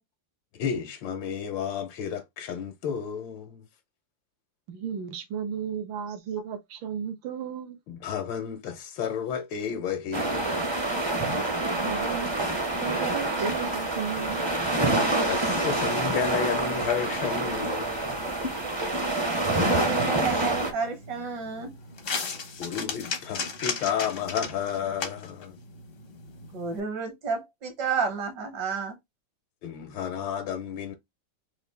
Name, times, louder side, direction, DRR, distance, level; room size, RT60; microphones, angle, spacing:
voice 1, 0.5-3.7 7.9-10.7 12.4-12.5 14.9-18.2 22.6-25.6 29.6-30.9, left 8 dB, 90° left, 1.5 m, -32 dB
voice 2, 4.7-7.8 11.7-12.5 12.8-14.4, right 7 dB, 85° right, 1.5 m, -34 dB
sound 1, 10.1-20.7, right 2 dB, 30° right, 0.5 m, -27 dB
voice 3, 19.2-21.7 26.5-29.0, right 5 dB, 70° right, 1.8 m, -31 dB
sound 2, 20.0-26.8, left 5 dB, 55° left, 0.6 m, -36 dB
4.2 x 2.5 x 3.3 m
omnidirectional pair, 2.0 m